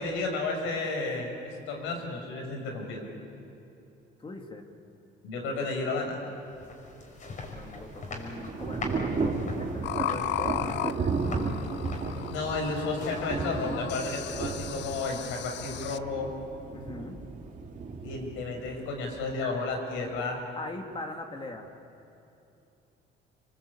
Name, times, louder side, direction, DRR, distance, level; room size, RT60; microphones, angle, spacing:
voice 1, 0.0-3.0 5.2-6.2 12.3-16.3 18.0-20.4, left 3 dB, 85° left, 3 dB, 6.3 m, -32 dB
voice 2, 4.2-4.6 7.5-11.5 16.7-17.2 20.6-21.7, left 2 dB, 25° left, 3 dB, 2.4 m, -41 dB
sound 1, 6.3-14.1, left 2 dB, 40° left, 5.6 m, -43 dB
Thunder / Rain, 7.4-19.4, right 4 dB, 40° right, 2.9 m, -34 dB
sound 2, 9.8-16.0, left 13 dB, 65° left, 0.8 m, -36 dB
27.5 x 24.5 x 8.5 m, 2.8 s
cardioid pair, 105°, 20 cm